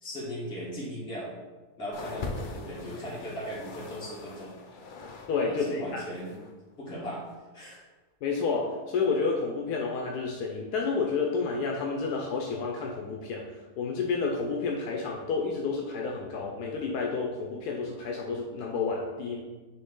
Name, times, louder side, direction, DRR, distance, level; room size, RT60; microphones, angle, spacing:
voice 1, 0.0-1.3 1.8-4.5 5.5-6.4 6.8-7.2 7.5-7.8, equal, 40° left, -7 dB, 2.4 m, -38 dB
sound 1, 1.9-5.4 5.6-6.5 7.3-7.4, left 3 dB, 60° left, 0.5 m, -41 dB
voice 2, 5.3-6.0 8.2-13.4 13.8-19.4, left 4 dB, 80° left, 0 dB, 1.2 m, -30 dB
9.5 x 3.2 x 3.7 m, 1.3 s
omnidirectional pair, 1.7 m